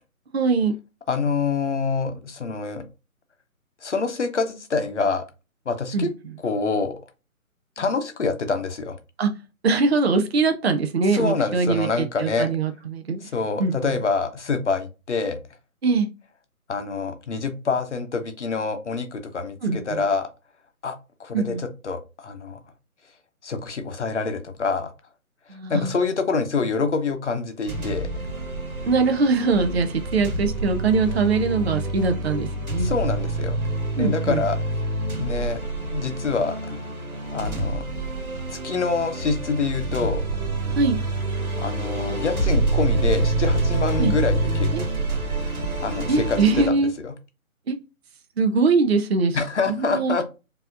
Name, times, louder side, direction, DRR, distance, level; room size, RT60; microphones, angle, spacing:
voice 1, 0.3-0.7 5.9-6.1 9.2-9.3 9.6-13.2 13.6-13.9 15.8-16.1 19.6-20.0 21.3-21.6 25.5-26.0 28.8-32.9 34.0-34.4 40.7-41.0 44.0-44.1 44.7-44.8 46.1-46.9 47.7-47.8 48.4-49.4 49.7-50.1, right 4 dB, 50° right, 6 dB, 0.5 m, -22 dB
voice 2, 1.1-2.8 3.8-5.3 5.7-6.1 6.4-6.9 7.8-9.0 11.1-12.5 13.2-15.4 16.7-20.3 20.8-22.6 23.4-24.9 25.7-28.1 32.8-33.6 34.0-34.6 35.2-35.6 35.9-36.8 37.3-37.8 38.5-40.2 41.6-44.7 45.8-47.1 49.3-50.2, left 4 dB, 55° left, 7 dB, 0.8 m, -26 dB
sound 1, 27.7-46.7, right 2 dB, 80° right, 1.5 m, -27 dB
4.7 x 2.8 x 2.5 m, 0.29 s
figure-of-eight pair, 145°, 43 cm